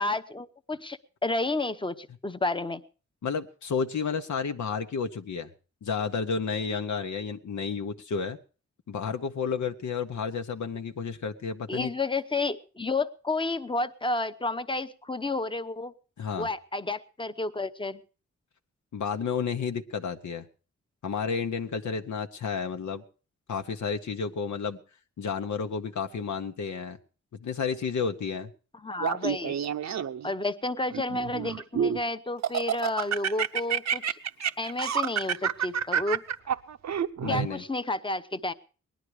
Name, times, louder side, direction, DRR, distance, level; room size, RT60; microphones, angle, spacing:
voice 1, 0.0-2.8 11.7-15.9 16.4-18.0 28.8-29.6 30.2-34.2 34.6-36.2 37.3-38.5, left 2 dB, 15° left, 11 dB, 0.8 m, -31 dB
voice 2, 3.2-5.5 5.8-8.4 8.9-11.9 16.2-16.5 18.9-20.5 21.0-23.0 23.5-24.8 25.2-27.0 27.4-28.5 37.2-37.6, left 6 dB, 80° left, 6 dB, 1.0 m, -31 dB
Laughter, 29.0-30.3 30.9-32.0 32.4-37.5, right 8 dB, 65° right, 0.7 m, -28 dB
19.5 x 11.5 x 4.8 m, 0.38 s
wide cardioid pair, 105°, 29 cm